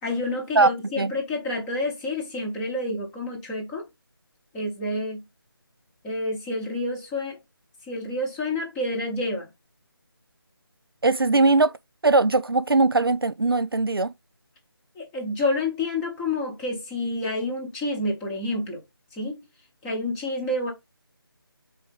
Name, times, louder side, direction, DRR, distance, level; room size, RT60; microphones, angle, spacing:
voice 1, 0.0-3.9 4.5-5.2 6.0-7.4 7.8-9.5 14.9-18.8 19.1-19.4 19.8-20.7, left 2 dB, 5° left, 0.9 m, -29 dB
voice 2, 11.0-11.7 12.0-14.1, right 3 dB, 70° right, 0.6 m, -20 dB
4.8 x 4.2 x 5.3 m
figure-of-eight pair, 155°, 13 cm